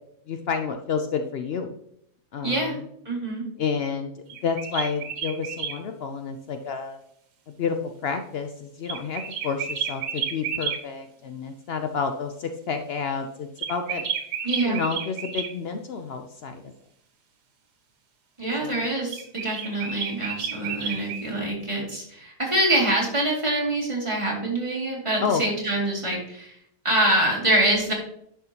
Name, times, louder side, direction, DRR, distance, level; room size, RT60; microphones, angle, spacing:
voice 1, 0.3-1.7 2.3-2.8 3.6-7.0 7.5-7.8 8.0-14.1 14.6-16.7 18.6-18.8 25.2-25.4, left 5 dB, 85° left, 6 dB, 0.5 m, -30 dB
voice 2, 2.4-2.8 3.0-3.5 14.4-14.8 18.4-26.6 26.8-27.9, right 1 dB, 20° right, -4 dB, 2.4 m, -25 dB
sound 1, 4.3-5.8 8.9-10.8 13.6-15.5 19.1-21.3, right 7 dB, 75° right, 1.6 m, -31 dB
10.5 x 5.7 x 2.9 m, 0.72 s
omnidirectional pair, 1.7 m